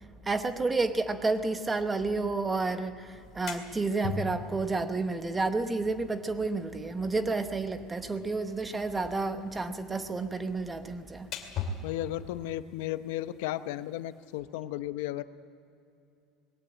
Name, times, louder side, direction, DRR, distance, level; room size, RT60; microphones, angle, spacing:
voice 1, 0.3-11.3, right 3 dB, 10° right, 0.8 m, -30 dB
sound 1, 3.1-14.4, left 5 dB, 35° left, 2.2 m, -44 dB
voice 2, 11.8-15.2, left 14 dB, 75° left, 0.8 m, -34 dB
20.5 x 17.5 x 8.9 m
cardioid pair, 180°, 0 cm